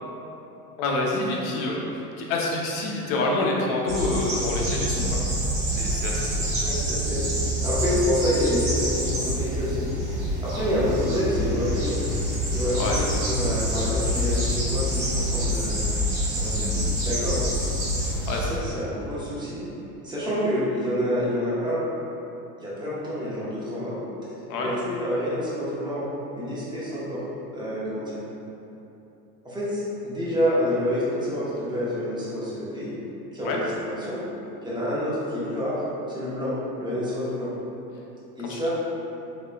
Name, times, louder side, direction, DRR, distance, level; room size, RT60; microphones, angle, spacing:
voice 1, 0.8-5.2 5.7-6.3 10.6-10.7 12.8-13.0 18.0-18.5 24.5-24.7 33.4-33.6 38.5-38.7, left 2 dB, 55° left, -1 dB, 0.8 m, -27 dB
sound 1, 3.9-18.6, equal, 85° right, 1.4 m, -26 dB
voice 2, 6.6-7.3 7.6-12.0 12.5-15.9 16.3-16.7 17.0-17.4 18.4-19.6 20.0-21.8 22.6-24.0 24.6-26.1 26.3-27.2 27.5-28.2 29.4-32.9 33.3-34.3 34.6-37.5 38.4-38.7, equal, 10° right, -9 dB, 1.1 m, -28 dB
3.8 x 3.1 x 2.3 m, 3.0 s
hypercardioid pair, 95°, 47 cm